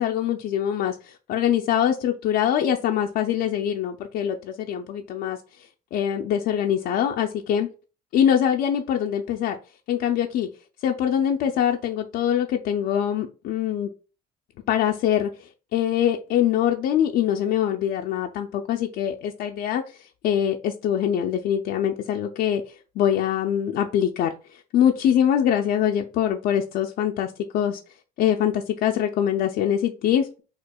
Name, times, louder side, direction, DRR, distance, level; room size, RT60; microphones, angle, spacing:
voice 1, 0.0-7.7 8.1-9.6 9.9-10.5 10.8-13.9 14.7-27.8 28.2-30.4, left 9 dB, 65° left, 3 dB, 0.4 m, -24 dB
4.3 x 2.4 x 2.2 m, 0.35 s
cardioid pair, 110°, 17 cm